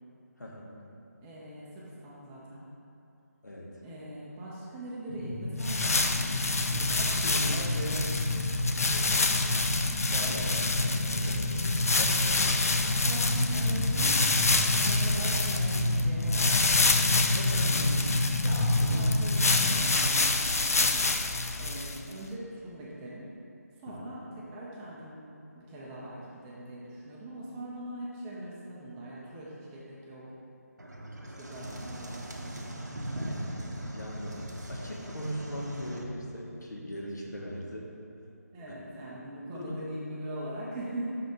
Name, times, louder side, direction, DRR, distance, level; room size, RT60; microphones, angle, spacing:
voice 1, 0.4-0.8 3.4-3.8 6.7-8.3 8.8-9.6 10.1-12.6 17.3-17.9 18.8-18.9 23.9-24.0 33.9-37.9 39.5-39.9, equal, 80° left, -2 dB, 1.2 m, -39 dB
voice 2, 1.2-2.7 3.8-6.8 13.0-14.2 14.7-16.9 17.6-18.1 18.4-21.1 21.6-23.3 23.8-25.2 25.5-30.3 31.2-33.0 38.5-41.2, right 1 dB, 10° right, -6 dB, 0.4 m, -41 dB
sound 1, 5.1-19.7, left 1 dB, 40° left, 0.9 m, -29 dB
sound 2, 5.6-22.1, left 3 dB, 60° left, 0.5 m, -28 dB
sound 3, 30.8-36.0, right 1 dB, 85° right, 0.8 m, -39 dB
5.8 x 4.0 x 5.0 m, 2.8 s
figure-of-eight pair, 155°, 9 cm